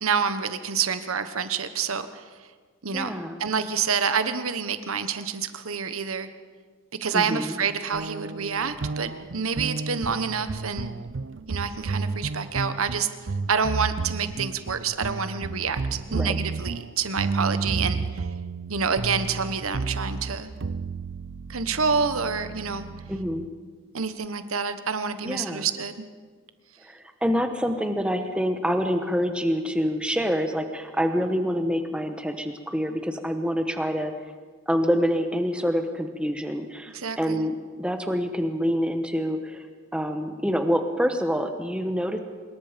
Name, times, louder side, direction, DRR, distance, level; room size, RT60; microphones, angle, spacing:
voice 1, 0.0-2.2 2.8-3.1 3.4-6.3 7.0-10.9 11.5-13.1 13.5-18.3 18.7-20.5 21.5-22.9 23.9-26.0 36.9-37.5, right 6 dB, 85° right, 10 dB, 1.3 m, -28 dB
voice 2, 2.9-3.4 7.1-7.5 16.1-16.4 23.1-23.5 25.2-25.7 26.8-34.1 34.7-39.6 39.9-42.2, equal, 5° right, 6 dB, 1.2 m, -26 dB
sound 1, 7.9-23.5, right 4 dB, 60° right, 0.5 m, -32 dB
25.5 x 21.0 x 5.2 m, 1.5 s
head